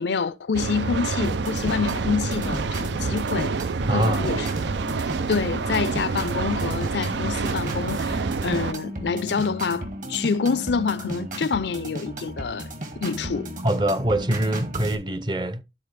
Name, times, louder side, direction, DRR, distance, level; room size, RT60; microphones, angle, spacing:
voice 1, 0.0-3.5 3.9-5.0 5.3-12.7 13.0-13.5, left 5 dB, 70° left, 0.5 m, -27 dB
sound 1, 0.5-8.7, right 4 dB, 75° right, 0.5 m, -27 dB
sound 2, 1.2-14.9, right 1 dB, 45° right, 1.5 m, -34 dB
voice 2, 3.9-4.3 13.6-15.6, right 1 dB, 25° right, 0.6 m, -24 dB
13.0 x 4.4 x 3.3 m
head